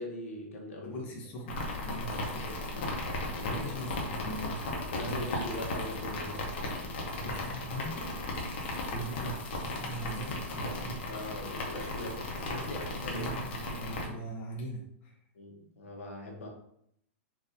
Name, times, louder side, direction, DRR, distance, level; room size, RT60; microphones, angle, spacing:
voice 1, 0.0-1.0 2.0-3.7 4.9-6.9 10.6-10.8 11.1-13.3 15.3-16.5, left 1 dB, 90° left, 0 dB, 1.0 m, -41 dB
voice 2, 0.8-2.5 3.5-4.6 5.0-5.4 7.2-8.2 8.5-11.0 13.1-15.2, right 1 dB, 25° left, -1 dB, 0.7 m, -41 dB
sound 1, 1.5-14.1, left 2 dB, 50° left, 0.8 m, -36 dB
3.7 x 2.6 x 2.7 m, 0.71 s
supercardioid pair, 165°, 7 cm